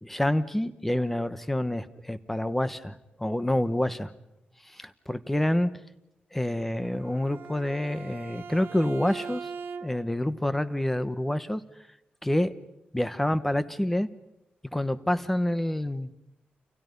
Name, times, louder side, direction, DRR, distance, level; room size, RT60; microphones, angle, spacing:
voice 1, 0.0-4.1 4.6-5.7 6.3-9.5 9.8-11.6 12.2-12.5 12.9-14.1 14.7-16.1, left 1 dB, 5° left, 13 dB, 1.1 m, -27 dB
Bowed string instrument, 6.8-10.2, right 5 dB, 75° right, 1.1 m, -41 dB
30.0 x 28.5 x 5.4 m, 0.86 s
wide cardioid pair, 155°, 3 cm